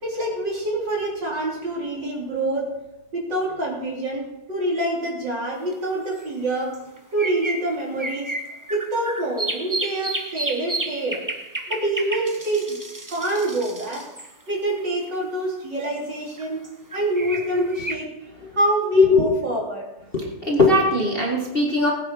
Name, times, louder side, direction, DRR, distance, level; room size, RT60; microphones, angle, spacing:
voice 1, 0.0-2.7 3.1-6.7 7.1-8.3 8.7-11.2 11.7-12.8 13.1-14.1 14.5-16.6 16.9-18.1 18.5-19.9, right 1 dB, 55° right, -3 dB, 4.2 m, -26 dB
sound 1, 5.7-5.8 6.7-15.1 16.4-18.0, right 2 dB, 20° right, 0.4 m, -32 dB
voice 2, 19.0-19.4 20.1-21.9, left 3 dB, 25° left, -2 dB, 1.9 m, -19 dB
20.0 x 8.9 x 4.7 m, 0.95 s
omnidirectional pair, 2.4 m